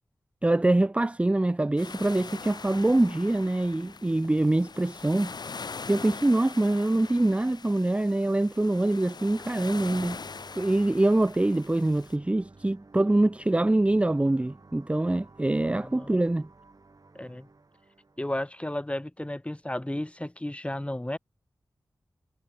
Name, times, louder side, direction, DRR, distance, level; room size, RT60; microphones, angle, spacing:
voice 1, 0.4-5.3 5.9-10.2 10.5-16.5, right 2 dB, 15° right, 0.4 m, -24 dB
sound 1, 1.8-12.2, left 4 dB, 70° left, 1.2 m, -42 dB
sound 2, 9.3-18.3, right 3 dB, 55° right, 4.9 m, -54 dB
voice 2, 15.6-16.2 17.1-17.5 18.2-21.2, left 1 dB, 15° left, 2.4 m, -33 dB
cardioid pair, 45°, 8 cm